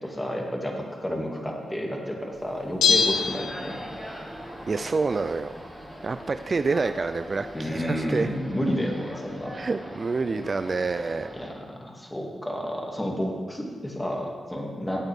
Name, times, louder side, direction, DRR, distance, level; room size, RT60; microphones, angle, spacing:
voice 1, 0.0-3.8 7.5-9.6 11.3-15.0, equal, 15° left, -1 dB, 2.4 m, -31 dB
Bell, 2.8-4.2 4.5-4.6, left 6 dB, 90° left, 0.7 m, -24 dB
sound 1, 2.9-11.5, equal, ahead, 2.9 m, -41 dB
voice 2, 4.7-5.7 6.0-8.3 9.5-11.3, right 4 dB, 50° right, 9 dB, 0.4 m, -27 dB
13.5 x 8.0 x 3.6 m, 1.5 s
supercardioid pair, 50°, 0 cm